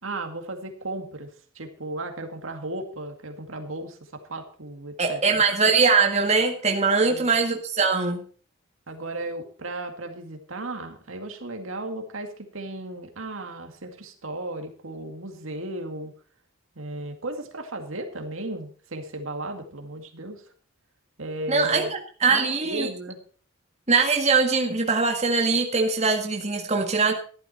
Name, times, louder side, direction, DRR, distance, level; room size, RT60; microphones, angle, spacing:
voice 1, 0.0-5.4 7.0-7.3 8.9-16.1 16.8-20.4 21.2-21.9 22.3-23.2, right 2 dB, 75° right, 5 dB, 2.2 m, -35 dB
voice 2, 5.0-8.2 21.5-22.9 23.9-27.1, right 4 dB, 35° right, 2 dB, 1.8 m, -22 dB
13.5 x 11.5 x 4.3 m, 0.42 s
head